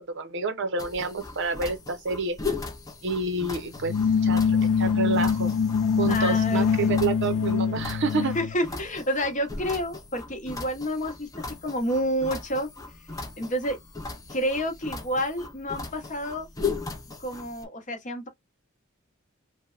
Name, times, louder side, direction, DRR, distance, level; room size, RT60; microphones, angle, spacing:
voice 1, 0.1-2.4 3.0-3.9 4.2-5.6 6.0-8.4, right 3 dB, 55° right, 0.6 m, -28 dB
sound 1, 0.8-17.7, left 4 dB, 15° left, 0.5 m, -38 dB
sound 2, 3.8-8.6, left 6 dB, 85° left, 0.3 m, -24 dB
voice 2, 6.1-6.9 8.3-11.3 11.6-12.7 13.4-13.8 14.3-16.5 17.2-18.3, equal, 35° left, 0.9 m, -29 dB
3.2 x 2.1 x 2.4 m
head